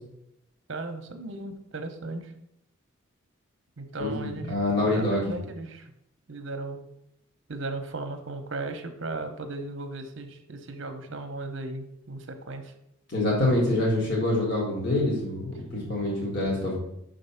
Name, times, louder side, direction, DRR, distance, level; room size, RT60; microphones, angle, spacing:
voice 1, 0.7-2.3 3.8-5.8 6.3-6.9 7.5-12.7, right 2 dB, 60° right, 7 dB, 0.8 m, -36 dB
voice 2, 4.0-5.2 13.1-16.7, left 1 dB, 50° left, -5 dB, 1.9 m, -26 dB
5.9 x 3.8 x 5.6 m, 0.80 s
head